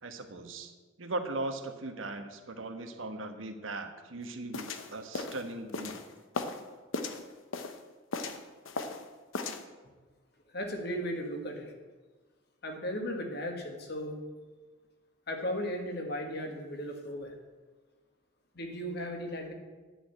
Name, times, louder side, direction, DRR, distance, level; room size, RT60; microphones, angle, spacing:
voice 1, 0.0-0.7 1.0-6.0, right 2 dB, 85° right, 6 dB, 1.2 m, -38 dB
sound 1, 4.5-6.6 6.9-7.8 8.1-9.1 9.3-9.6, left 3 dB, 90° left, 0.9 m, -36 dB
voice 2, 10.5-11.7 12.6-14.2 15.3-17.3 18.6-19.5, equal, 55° left, 3 dB, 1.7 m, -36 dB
9.9 x 6.6 x 8.5 m, 1.3 s
head